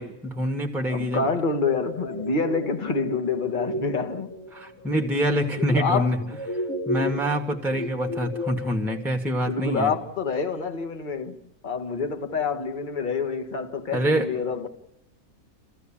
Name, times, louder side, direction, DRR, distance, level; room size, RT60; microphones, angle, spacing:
voice 1, 0.0-1.2 4.5-6.2 6.5-9.9 13.9-14.3, equal, ahead, 1.8 m, -26 dB
voice 2, 0.9-4.3 5.6-6.4 7.0-7.3 7.7-7.8 9.4-11.4 11.6-14.7, left 4 dB, 35° left, 1.6 m, -27 dB
sound 1, 1.9-9.1, left 1 dB, 65° left, 3.3 m, -35 dB
28.0 x 15.0 x 8.7 m
omnidirectional pair, 1.6 m